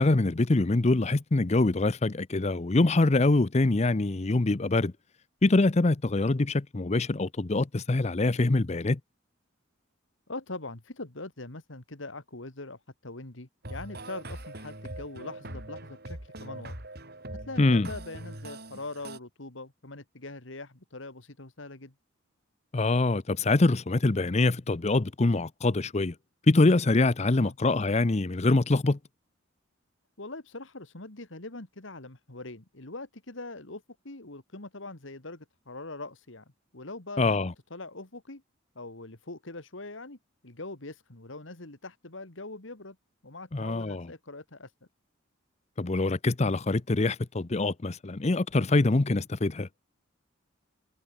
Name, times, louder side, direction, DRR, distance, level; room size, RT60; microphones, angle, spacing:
voice 1, 0.0-4.9 5.4-9.0 17.6-17.9 22.7-26.1 26.5-29.0 37.2-37.5 43.5-44.1 45.8-49.7, left 2 dB, 35° left, 0.6 m, -24 dB
voice 2, 10.3-16.8 17.3-21.9 27.3-27.5 30.2-36.4 36.7-37.2 37.7-38.4 38.8-40.2 40.4-43.0 43.2-44.7, left 2 dB, 70° left, 2.4 m, -42 dB
sound 1, 13.6-19.2, right 1 dB, 50° right, 5.4 m, -42 dB
head